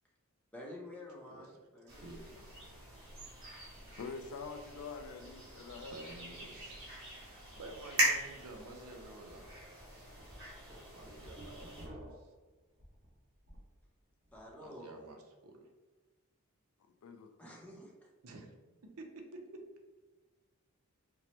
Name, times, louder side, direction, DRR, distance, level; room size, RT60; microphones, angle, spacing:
voice 1, 0.5-2.1 14.3-14.9 17.4-17.9, left 1 dB, 5° left, -3 dB, 0.6 m, -49 dB
sound 1, 1.9-11.9, right 1 dB, 60° right, 1.3 m, -40 dB
voice 2, 1.9-2.4 4.8-4.9 5.8-6.8 7.1-9.5 10.9-12.2 14.6-15.6 18.2-18.5 18.8-19.6, right 2 dB, 75° right, 3 dB, 0.6 m, -51 dB
voice 3, 4.0-6.0 7.5-7.7 17.0-17.3, left 4 dB, 75° left, 6 dB, 0.3 m, -45 dB
sound 2, 8.1-8.2 8.6-8.7 9.3-9.5 9.9-13.7 14.1-14.5, equal, 40° right, 1.0 m, -52 dB
4.3 x 2.0 x 3.0 m, 1.3 s
head